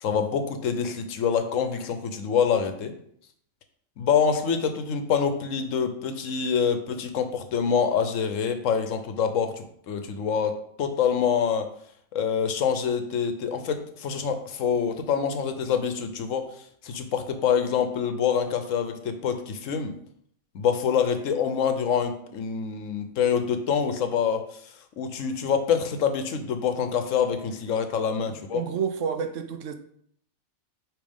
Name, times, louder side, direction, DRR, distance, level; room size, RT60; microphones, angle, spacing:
voice 1, 0.0-2.9 4.0-11.7 12.1-16.4 16.8-19.9 20.5-24.4 25.0-28.6, left 7 dB, 70° left, 1.0 m, -26 dB
voice 2, 28.3-29.7, right 7 dB, 70° right, 0.9 m, -30 dB
8.4 x 3.2 x 3.5 m
omnidirectional pair, 1.4 m